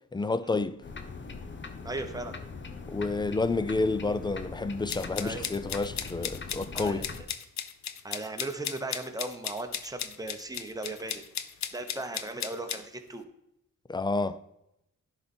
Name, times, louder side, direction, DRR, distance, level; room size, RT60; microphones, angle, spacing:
voice 1, 0.1-0.8 2.9-7.1 13.9-14.4, left 3 dB, 15° left, 0.4 m, -29 dB
sound 1, 0.8-7.2, left 4 dB, 40° left, 0.8 m, -41 dB
voice 2, 1.8-2.4 5.2-5.5 6.7-7.1 8.0-11.3 11.7-13.2, right 2 dB, 10° right, 1.0 m, -37 dB
sound 2, 4.9-12.8, left 9 dB, 65° left, 0.6 m, -36 dB
10.5 x 4.1 x 4.4 m
cardioid pair, 85°, 30 cm